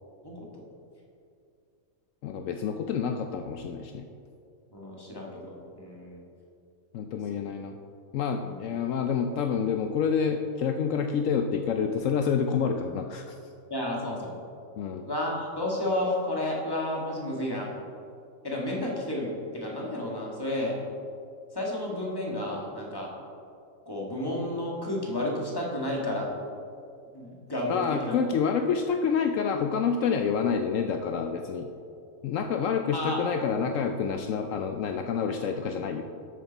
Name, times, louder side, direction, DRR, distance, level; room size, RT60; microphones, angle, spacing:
voice 1, 0.2-0.6 4.7-6.2 8.4-8.7 13.7-14.4 15.1-17.7 18.4-20.8 21.5-23.1 23.8-26.3 27.1-28.2 32.9-33.2, left 1 dB, 15° left, -3 dB, 1.7 m, -31 dB
voice 2, 2.2-4.1 6.9-7.8 8.1-13.4 14.8-15.1 27.7-31.7 32.2-36.0, left 6 dB, 75° left, 5 dB, 0.9 m, -28 dB
12.0 x 7.9 x 4.0 m, 2.5 s
omnidirectional pair, 1.4 m